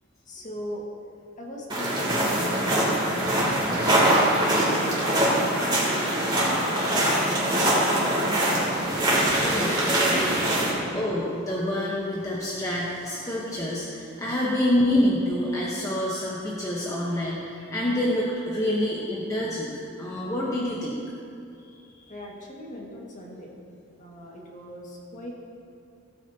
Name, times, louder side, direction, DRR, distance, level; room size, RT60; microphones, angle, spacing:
voice 1, 0.3-0.9 1.4-2.5 3.1-5.2 5.6-6.3 6.6-11.0 22.1-23.5 24.0-25.3, equal, 40° left, -2 dB, 1.8 m, -39 dB
sound 1, 1.7-10.7, right 1 dB, 25° right, 2.7 m, -23 dB
voice 2, 9.4-10.1 10.9-19.7 20.0-21.0, left 1 dB, 15° left, -5 dB, 1.1 m, -27 dB
16.0 x 9.1 x 2.8 m, 2.6 s
head